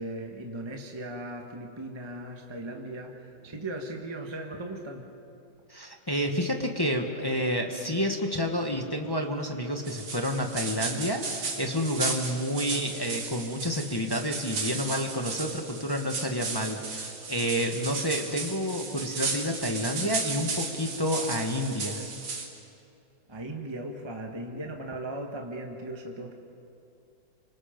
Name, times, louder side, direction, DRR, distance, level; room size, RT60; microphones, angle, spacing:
voice 1, 0.0-5.1 23.3-26.3, right 1 dB, 15° right, 2 dB, 1.3 m, -38 dB
voice 2, 5.7-22.1, equal, 15° left, 3 dB, 1.0 m, -29 dB
sound 1, 9.9-22.5, right 4 dB, 75° right, 3.0 m, -35 dB
28.5 x 25.0 x 5.2 m, 2.7 s
omnidirectional pair, 2.1 m